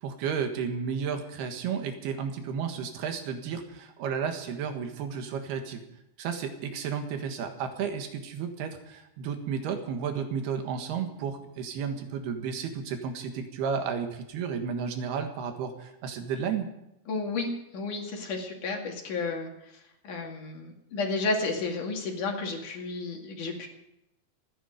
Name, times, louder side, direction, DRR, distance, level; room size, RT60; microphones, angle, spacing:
voice 1, 0.0-5.8 6.2-16.7, right 6 dB, 65° right, 6 dB, 3.3 m, -32 dB
voice 2, 17.1-19.5 20.0-23.7, left 3 dB, 50° left, 1 dB, 3.4 m, -32 dB
28.0 x 10.0 x 5.1 m, 0.84 s
omnidirectional pair, 5.2 m